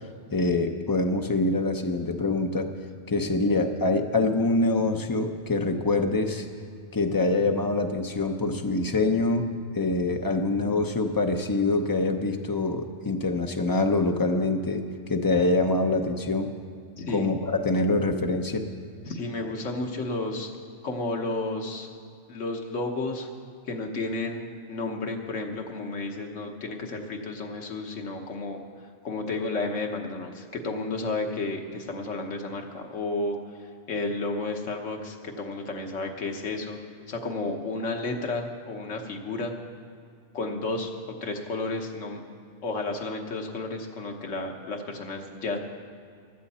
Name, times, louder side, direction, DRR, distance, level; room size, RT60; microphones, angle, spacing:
voice 1, 0.3-2.7 3.1-6.5 6.9-9.5 9.7-14.8 15.1-16.5 17.1-18.7, left 2 dB, 20° left, 4 dB, 0.6 m, -25 dB
voice 2, 17.0-17.3 19.1-20.5 20.8-21.9 22.3-23.3 23.7-28.6 29.0-33.4 33.9-36.8 37.1-39.5 40.3-40.9 41.2-42.2 42.6-45.6, left 2 dB, 75° left, 2 dB, 1.5 m, -32 dB
16.0 x 12.0 x 4.3 m, 2.4 s
omnidirectional pair, 1.3 m